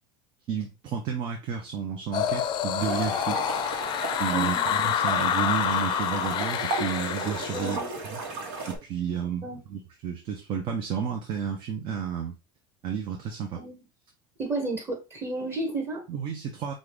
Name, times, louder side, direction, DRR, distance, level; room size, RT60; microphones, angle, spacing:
voice 1, 0.5-3.4 4.2-8.2 8.7-12.4 12.8-13.6 16.1-16.7, right 7 dB, 45° right, 3 dB, 0.9 m, -32 dB
sound 1, 2.1-7.8, left 9 dB, 40° left, 0.5 m, -28 dB
sound 2, 2.8-8.8, right 3 dB, 75° right, 1.5 m, -35 dB
voice 2, 4.3-4.9 7.5-7.9 9.4-9.6 13.6-13.8 14.4-16.0, right 2 dB, 25° right, 2 dB, 1.7 m, -32 dB
5.6 x 2.6 x 3.3 m, 0.28 s
supercardioid pair, 120°, 12 cm